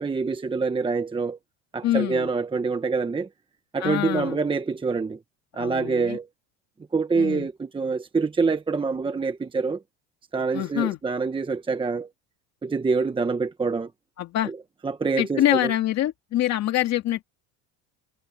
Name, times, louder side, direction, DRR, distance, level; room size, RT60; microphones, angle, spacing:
voice 1, 0.0-1.4 1.7-3.3 3.7-5.2 5.5-6.3 6.9-9.8 10.3-12.1 12.6-13.9 14.5-14.6 14.8-15.7, right 4 dB, 15° right, 1.1 m, -26 dB
voice 2, 1.8-2.3 3.8-4.4 5.5-6.2 7.1-7.5 10.5-11.0 14.2-14.5 15.2-17.2, left 13 dB, 50° left, 2.1 m, -25 dB
cardioid pair, 125°, 35 cm